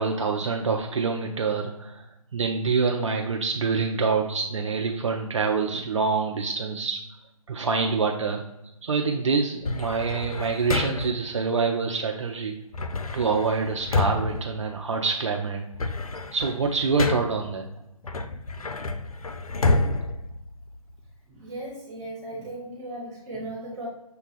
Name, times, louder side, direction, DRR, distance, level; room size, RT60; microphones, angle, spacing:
voice 1, 0.0-2.0 2.3-7.0 7.5-8.4 8.8-12.5 13.1-15.6 16.3-17.6, right 4 dB, 55° right, 2 dB, 0.5 m, -26 dB
sound 1, 9.6-11.3 12.7-15.2 15.6-17.5 18.0-21.1, left 3 dB, 80° left, 0.5 m, -29 dB
voice 2, 21.3-23.9, right 1 dB, 20° right, -8 dB, 1.1 m, -37 dB
6.7 x 2.3 x 3.2 m, 0.89 s
figure-of-eight pair, 140°, 18 cm